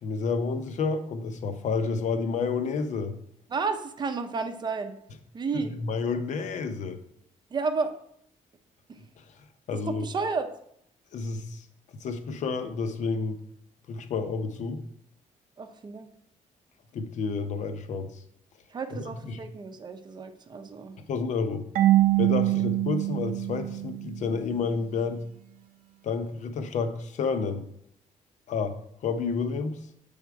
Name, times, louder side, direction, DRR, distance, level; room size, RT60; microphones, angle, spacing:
voice 1, 0.0-3.1 5.5-7.0 9.7-10.1 11.1-11.7 11.9-13.4 13.9-14.8 16.9-18.1 18.9-19.4 21.1-21.6 22.2-25.2 26.0-27.7 28.5-28.8 29.0-29.8, left 4 dB, 60° left, 9 dB, 0.7 m, -30 dB
voice 2, 3.5-4.9 5.3-5.7 7.5-7.9 8.9-9.0 9.9-10.5 15.6-16.1 18.7-21.0, right 4 dB, 30° right, 8 dB, 0.6 m, -31 dB
Marimba xylophone / Wood, 21.7-24.5, right 16 dB, 75° right, 0.6 m, -24 dB
7.1 x 3.5 x 4.7 m, 0.70 s
cardioid pair, 135°, 14 cm